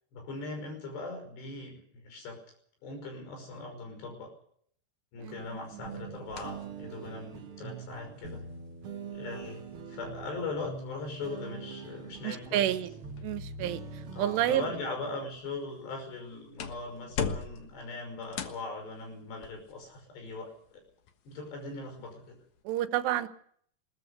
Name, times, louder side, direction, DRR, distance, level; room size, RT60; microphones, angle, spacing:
voice 1, 0.1-2.4 2.8-4.3 5.1-8.4 9.1-9.6 9.9-12.7 14.1-20.8 21.3-22.4, left 3 dB, 85° left, 5 dB, 7.7 m, -40 dB
sound 1, 5.2-22.6, left 6 dB, 60° left, 2.1 m, -45 dB
voice 2, 5.2-5.9 12.2-12.9 13.2-14.7 22.7-23.3, right 12 dB, 85° right, 11 dB, 3.2 m, -30 dB
sound 2, 5.8-15.3, right 4 dB, 55° right, 1.5 m, -43 dB
21.0 x 19.0 x 6.8 m, 0.65 s
omnidirectional pair, 4.8 m